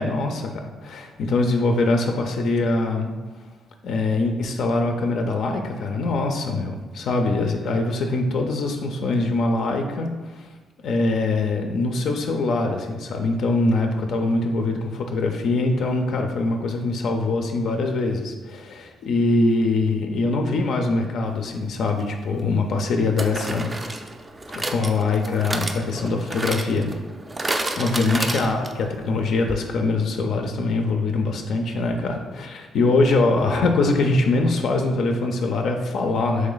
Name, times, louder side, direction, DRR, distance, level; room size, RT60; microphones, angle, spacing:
voice 1, 0.0-3.1 3.8-10.5 10.8-24.1 24.5-26.9 27.7-36.5, left 3 dB, 70° left, 3 dB, 0.4 m, -23 dB
sound 1, 21.9-22.0 23.2-28.9 29.2-29.3 29.5-29.6, right 2 dB, 20° right, 0.3 m, -30 dB
3.1 x 3.1 x 3.8 m, 1.3 s
cardioid pair, 90°, 0 cm